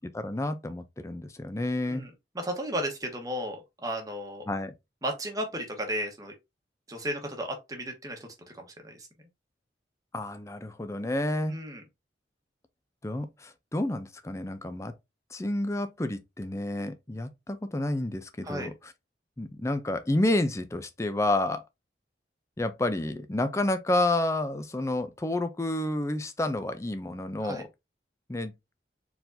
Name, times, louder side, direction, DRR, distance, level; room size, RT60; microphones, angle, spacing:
voice 1, 0.1-2.1 4.5-4.7 10.1-11.6 13.0-14.9 15.3-18.7 19.4-21.6 22.6-27.7 28.3-28.5, left 1 dB, 15° left, 0.5 m, -30 dB
voice 2, 1.8-2.1 2.3-4.4 5.0-6.3 6.9-8.3 8.5-9.1 11.5-11.8 18.4-18.7 27.4-27.6, equal, 20° right, 1.1 m, -34 dB
4.6 x 3.9 x 2.7 m
head